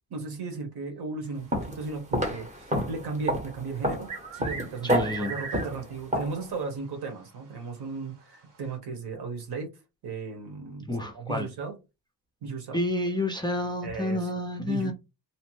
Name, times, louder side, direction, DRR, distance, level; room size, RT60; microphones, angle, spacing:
voice 1, 0.1-9.7 10.0-11.8 12.4-12.8 13.8-14.3 14.6-14.9, right 4 dB, 70° right, 1.0 m, -36 dB
sound 1, 1.5-1.8 2.1-6.5, equal, 20° right, 0.7 m, -29 dB
sound 2, 3.8-6.0 6.3-6.4 7.4-7.5 8.6-8.7, right 5 dB, 50° right, 0.8 m, -38 dB
voice 2, 4.8-5.3 10.9-11.5 12.7-14.9, left 1 dB, 10° left, 0.3 m, -29 dB
2.9 x 2.1 x 3.0 m
wide cardioid pair, 160°, 40 cm